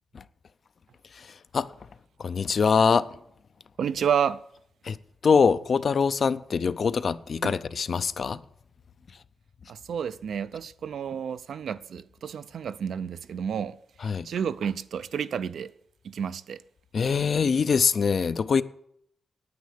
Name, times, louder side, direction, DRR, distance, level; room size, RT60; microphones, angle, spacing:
voice 1, 2.2-3.1 4.9-5.0 5.2-8.4 14.0-14.3 16.9-18.6, left 5 dB, 40° left, 0.5 m, -23 dB
voice 2, 3.8-4.4 7.4-7.5 9.7-13.8 14.0-15.7 16.0-16.6, right 7 dB, 65° right, 0.5 m, -30 dB
9.5 x 9.4 x 8.3 m
wide cardioid pair, 170°, 0 cm